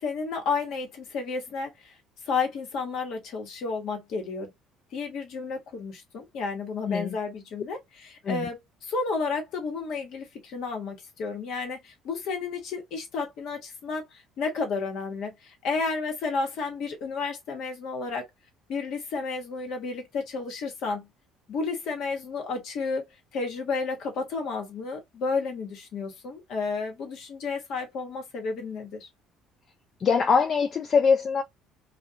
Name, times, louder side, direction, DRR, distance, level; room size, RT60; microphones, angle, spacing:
voice 1, 0.0-1.9 2.3-4.5 4.9-18.2 18.7-21.1 21.5-23.0 23.3-29.1, left 4 dB, 60° left, 1.0 m, -32 dB
voice 2, 6.8-7.2 8.2-8.5 30.0-31.4, left 5 dB, 45° left, 0.3 m, -23 dB
2.3 x 2.1 x 2.7 m
hypercardioid pair, 60°, 0 cm